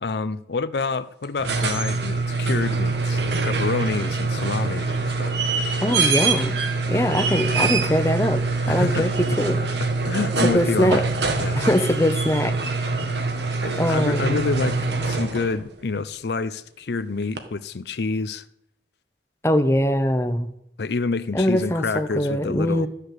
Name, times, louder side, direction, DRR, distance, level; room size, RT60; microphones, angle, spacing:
voice 1, 0.0-5.4 8.7-9.0 9.8-11.1 11.4-11.6 13.6-18.4 20.8-22.9, left 4 dB, 70° left, 0.5 m, -28 dB
sound 1, 1.2-15.6 17.4-17.5, right 3 dB, 80° right, 1.5 m, -24 dB
voice 2, 5.8-6.5 6.9-8.4 8.7-9.6 10.4-11.0 11.5-12.6 13.8-14.4 19.4-20.5 21.3-22.9, equal, 15° left, 0.8 m, -22 dB
13.0 x 6.7 x 8.2 m
head